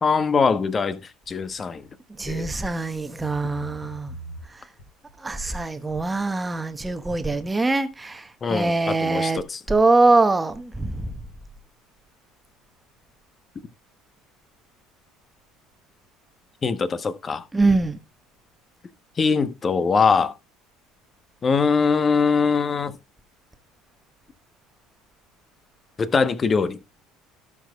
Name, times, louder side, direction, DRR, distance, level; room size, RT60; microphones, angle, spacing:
voice 1, 0.0-1.0 1.3-1.8 2.3-2.5 8.4-9.6 16.6-17.4 19.2-20.3 21.4-22.9 26.0-26.8, left 5 dB, 30° left, 1.0 m, -22 dB
sound 1, 1.9-2.1 2.4-2.8 3.2-5.2 5.6-6.0 6.4-6.5, equal, 60° left, 3.1 m, -41 dB
voice 2, 2.2-4.1 5.2-9.4 9.7-11.1 17.5-18.0, right 3 dB, 15° right, 1.1 m, -23 dB
18.0 x 6.1 x 2.3 m
figure-of-eight pair, 60°, 0 cm